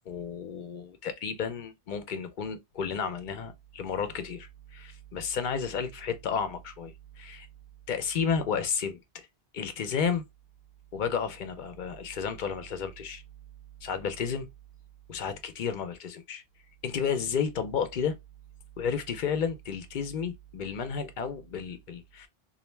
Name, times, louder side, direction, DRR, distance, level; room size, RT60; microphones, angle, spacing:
voice 1, 0.1-7.5 7.9-9.3 9.5-10.3 10.9-13.2 13.8-14.5 15.1-16.4 16.8-18.2 18.8-22.3, left 6 dB, 60° left, 0.6 m, -32 dB
2.5 x 2.1 x 3.1 m
omnidirectional pair, 1.0 m